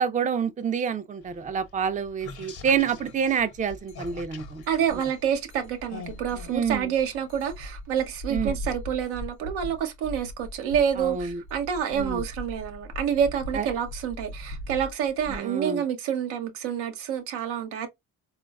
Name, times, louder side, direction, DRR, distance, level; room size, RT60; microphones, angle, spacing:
voice 1, 0.0-4.6 6.5-6.9 8.3-8.5 11.0-11.4 11.9-12.2 13.5-13.7 15.3-15.8, right 7 dB, 20° right, 0.4 m, -27 dB
sound 1, 1.2-7.6, left 4 dB, 55° left, 1.1 m, -45 dB
sound 2, 3.1-3.2 3.5-15.4, left 1 dB, 90° left, 0.7 m, -39 dB
voice 2, 4.7-17.9, right 8 dB, 85° right, 0.7 m, -28 dB
3.8 x 2.4 x 2.2 m
hypercardioid pair, 50°, 45 cm